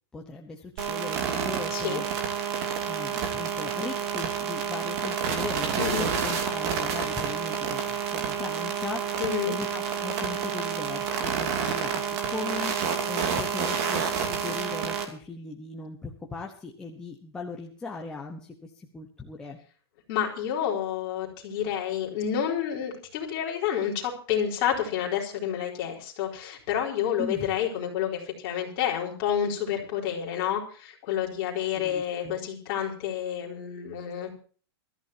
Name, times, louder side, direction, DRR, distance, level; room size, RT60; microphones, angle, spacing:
voice 1, 0.1-2.1 2.6-19.6 27.2-27.4 31.7-32.4, left 3 dB, 5° left, -1 dB, 1.1 m, -39 dB
sound 1, 0.8-15.0, right 7 dB, 35° right, 2.7 m, -29 dB
voice 2, 1.7-2.0 5.8-6.1 9.2-9.6 20.1-34.3, left 9 dB, 30° left, -1 dB, 4.4 m, -29 dB
24.0 x 14.0 x 2.9 m, 0.42 s
supercardioid pair, 180°, 14 cm